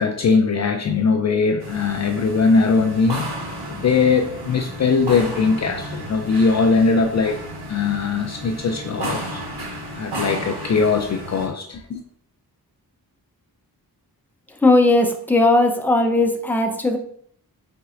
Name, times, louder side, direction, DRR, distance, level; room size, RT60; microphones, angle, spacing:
voice 1, 0.0-3.3 3.7-9.4 9.9-12.0, left 4 dB, 45° left, 0.4 m, -20 dB
sound 1, 1.6-11.5, right 1 dB, 90° right, 1.4 m, -33 dB
voice 2, 14.6-17.0, left 2 dB, 5° left, 0.6 m, -17 dB
4.2 x 3.9 x 2.5 m
cardioid pair, 75°, 38 cm